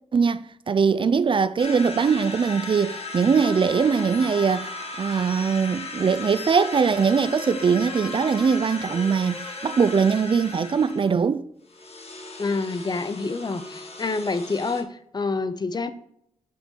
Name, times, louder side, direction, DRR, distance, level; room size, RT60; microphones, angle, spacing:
voice 1, 0.1-11.4, right 6 dB, 40° right, 0.4 m, -21 dB
sound 1, 1.6-11.2 11.7-14.8, left 3 dB, 50° left, 1.4 m, -37 dB
sound 2, 6.5-11.2, left 2 dB, 10° left, 1.1 m, -43 dB
voice 2, 12.4-15.9, left 3 dB, 35° left, 0.6 m, -27 dB
8.0 x 5.2 x 3.7 m
wide cardioid pair, 105°, 13 cm